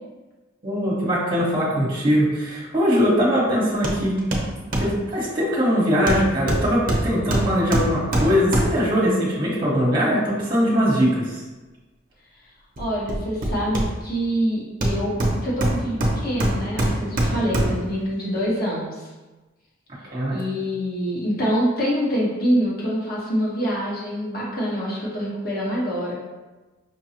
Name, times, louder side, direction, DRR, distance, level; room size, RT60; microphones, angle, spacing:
voice 1, 0.6-4.2 4.8-11.4 20.1-20.4, equal, 25° right, -6 dB, 1.2 m, -21 dB
Hammer, 3.8-4.0 4.3-5.0 6.1-9.0 12.8-14.2 14.8-17.9 18.4-18.5, right 1 dB, 45° right, 0.7 m, -23 dB
voice 2, 12.8-19.0 20.3-26.1, equal, 50° left, -6 dB, 1.3 m, -25 dB
5.4 x 2.3 x 2.9 m, 1.2 s
head